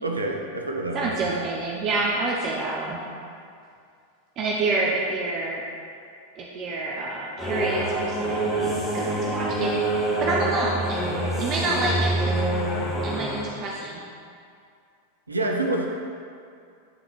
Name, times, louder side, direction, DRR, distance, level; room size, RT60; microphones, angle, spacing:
voice 1, 0.0-1.3 15.3-15.9, right 2 dB, 80° right, 1 dB, 0.6 m, -27 dB
voice 2, 0.9-3.0 4.4-5.6 6.3-11.0 11.4-12.5 13.0-14.0, right 3 dB, 35° right, -3 dB, 0.6 m, -28 dB
sound 1, 7.4-13.4, right 1 dB, 5° left, 1.0 m, -26 dB
9.0 x 3.8 x 3.1 m, 2.4 s
figure-of-eight pair, 90°, 0 cm